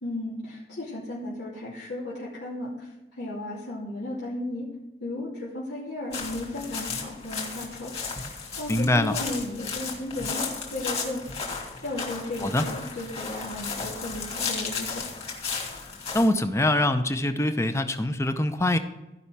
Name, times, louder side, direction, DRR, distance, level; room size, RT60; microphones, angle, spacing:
voice 1, 0.0-4.7 5.0-7.9 8.6-11.2 11.5-14.9, left 1 dB, 90° left, -8 dB, 2.7 m, -35 dB
sound 1, 6.1-16.3, left 5 dB, 35° left, 2.5 m, -34 dB
voice 2, 8.7-9.2 12.4-12.7 16.1-18.8, left 1 dB, 15° left, 9 dB, 0.7 m, -23 dB
15.0 x 5.5 x 6.1 m, 1.0 s
head